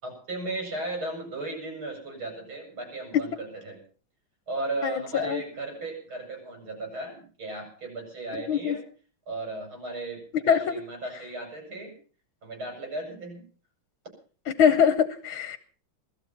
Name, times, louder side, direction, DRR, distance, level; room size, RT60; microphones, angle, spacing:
voice 1, 0.0-3.8 4.5-8.8 9.3-11.9 12.4-13.4, right 2 dB, 75° right, 7.0 m, -35 dB
voice 2, 4.8-5.4 8.3-8.8 10.5-10.8 14.6-15.6, left 7 dB, 75° left, 1.8 m, -23 dB
16.0 x 14.0 x 5.8 m
omnidirectional pair, 2.3 m